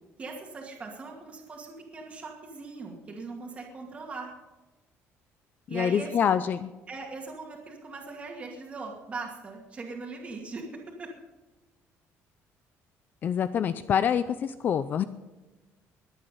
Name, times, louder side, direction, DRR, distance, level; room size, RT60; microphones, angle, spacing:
voice 1, 0.2-4.3 5.7-6.4 6.9-11.1, right 3 dB, 25° right, -1 dB, 2.4 m, -40 dB
voice 2, 5.7-6.7 13.2-15.0, left 8 dB, 35° left, 13 dB, 0.5 m, -26 dB
21.5 x 8.9 x 5.5 m, 1.1 s
cardioid pair, 175°, 5 cm